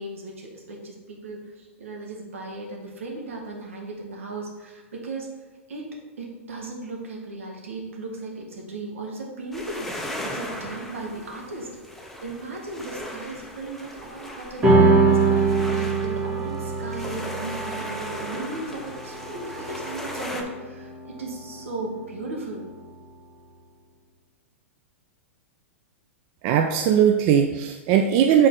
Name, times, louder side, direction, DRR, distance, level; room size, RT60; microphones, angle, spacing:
voice 1, 0.0-5.3 5.7-5.9 6.2-23.0, right 2 dB, 75° right, 0 dB, 1.4 m, -36 dB
sound 1, 9.5-20.4, left 1 dB, 5° left, 0.7 m, -37 dB
sound 2, 14.6-21.4, right 3 dB, 20° right, 1.3 m, -23 dB
voice 2, 26.4-28.5, right 9 dB, 45° right, 4 dB, 0.4 m, -19 dB
6.4 x 3.9 x 3.8 m, 1.3 s
hypercardioid pair, 105°, 7 cm